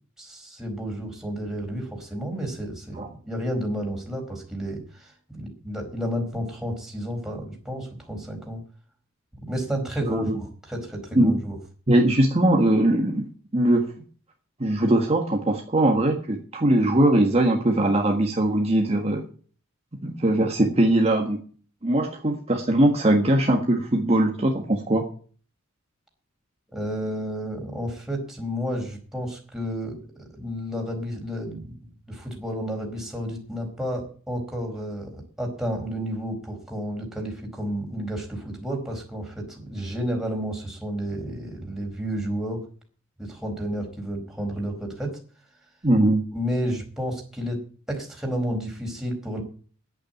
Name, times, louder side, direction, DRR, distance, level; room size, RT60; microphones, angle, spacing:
voice 1, 0.2-8.6 9.5-11.6 26.7-31.7 32.1-42.7 43.2-45.2 46.3-49.4, equal, 5° right, 0 dB, 4.6 m, -31 dB
voice 2, 10.0-10.3 11.1-11.3 11.9-13.3 13.5-13.9 14.6-19.2 20.0-21.4 21.8-25.0 45.8-46.2, right 1 dB, 30° right, 2 dB, 1.6 m, -21 dB
10.0 x 8.8 x 9.1 m, 0.42 s
head